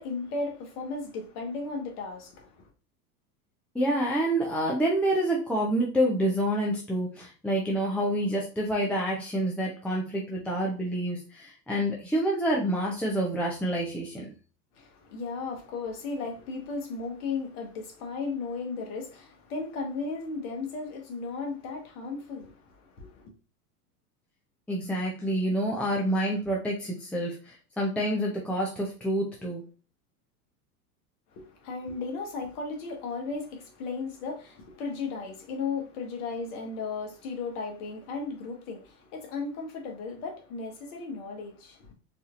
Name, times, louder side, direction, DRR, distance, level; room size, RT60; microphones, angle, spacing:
voice 1, 0.0-2.7 14.7-23.3 31.3-41.9, left 4 dB, 65° left, 1.5 m, -35 dB
voice 2, 3.7-14.3 24.7-29.6, right 1 dB, 5° left, 0.5 m, -28 dB
4.2 x 2.7 x 2.5 m
hypercardioid pair, 105°, 48 cm